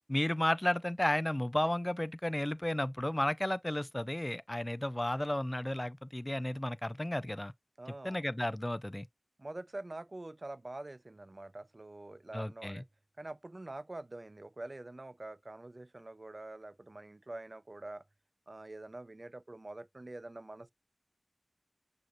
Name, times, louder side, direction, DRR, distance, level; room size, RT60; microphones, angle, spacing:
voice 1, 0.1-7.5 8.0-9.1 12.3-12.8, left 1 dB, 25° left, 0.4 m, -33 dB
voice 2, 7.8-8.2 9.4-12.8 13.2-18.0 18.5-20.7, right 2 dB, 50° right, 0.4 m, -45 dB
6.4 x 2.5 x 3.0 m
wide cardioid pair, 40°, 0 cm